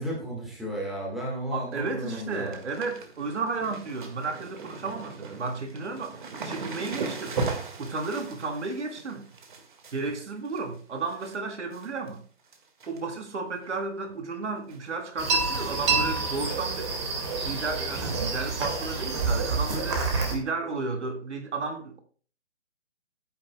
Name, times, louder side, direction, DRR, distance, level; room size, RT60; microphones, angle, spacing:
voice 1, 0.0-2.6, equal, ahead, 1.5 m, -33 dB
voice 2, 1.5-6.2 6.4-7.4 7.8-9.3 9.9-12.2 12.9-17.0 17.4-22.0, right 4 dB, 75° right, 1.9 m, -33 dB
sound 1, 1.6-1.9 2.2-11.4 11.7-12.2 12.5-13.3 13.6-13.7 14.7-15.0 15.2-15.3 15.7-15.8 17.4-17.5 18.2-18.3, right 4 dB, 45° right, 1.8 m, -38 dB
sound 2, 15.2-20.3, right 4 dB, 25° right, 1.9 m, -28 dB
16.0 x 8.9 x 2.2 m
hypercardioid pair, 165°, 35 cm